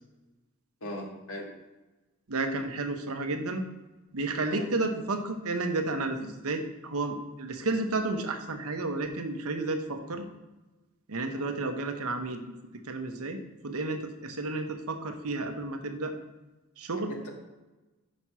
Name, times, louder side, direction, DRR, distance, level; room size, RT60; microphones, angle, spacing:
voice 1, 0.8-1.5 4.5-4.6 11.3-11.5 17.1-17.3, equal, 70° left, 1 dB, 1.6 m, -39 dB
voice 2, 2.3-3.6 4.1-10.3 11.1-12.4 12.8-13.4 13.6-16.2 16.8-17.1, right 2 dB, 80° right, 6 dB, 0.9 m, -31 dB
6.2 x 5.2 x 5.6 m, 1.1 s
head